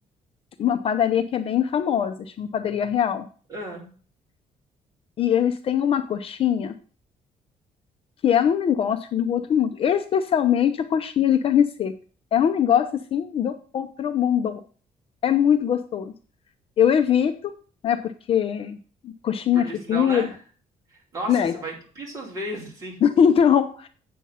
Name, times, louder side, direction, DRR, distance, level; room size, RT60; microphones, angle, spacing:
voice 1, 0.6-3.3 5.2-6.7 8.2-11.9 12.3-14.6 15.2-16.1 16.8-17.5 17.8-18.8 19.0-20.3 21.3-21.5 23.0-23.9, left 9 dB, 45° left, 8 dB, 0.6 m, -22 dB
voice 2, 3.5-3.9 19.5-20.4 21.1-23.0, right 1 dB, 25° right, -3 dB, 4.2 m, -34 dB
8.5 x 7.1 x 5.6 m, 0.41 s
cardioid pair, 175°, 14 cm